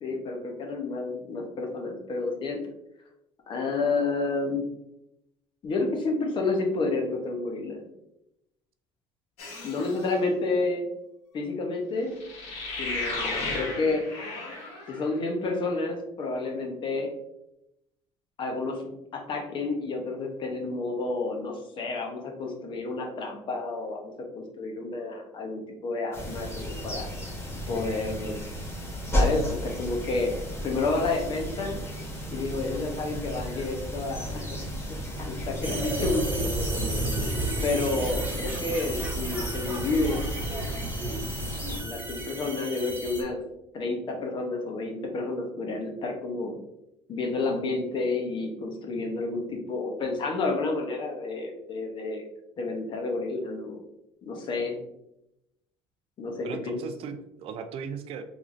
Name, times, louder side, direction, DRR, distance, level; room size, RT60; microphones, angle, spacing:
voice 1, 0.0-2.6 3.5-4.6 5.6-7.8 9.6-10.9 11.3-12.2 12.8-14.0 14.9-17.1 18.4-27.1 27.7-28.4 29.1-30.3 30.6-31.8 32.3-34.7 35.2-36.6 37.6-40.3 41.8-43.4 43.7-46.6 47.1-52.2 52.6-53.8 54.3-54.8 56.2-56.8, left 3 dB, 45° left, 2 dB, 0.9 m, -30 dB
sound 1, 9.4-10.1 12.2-15.1, left 2 dB, 70° left, 1.2 m, -34 dB
sound 2, 26.1-41.8, equal, 25° left, 1.3 m, -34 dB
sound 3, 35.6-43.2, right 2 dB, 15° right, 1.1 m, -32 dB
voice 2, 56.4-58.2, right 6 dB, 55° right, 8 dB, 0.4 m, -37 dB
3.6 x 3.2 x 2.5 m, 0.84 s
supercardioid pair, 95°, 11 cm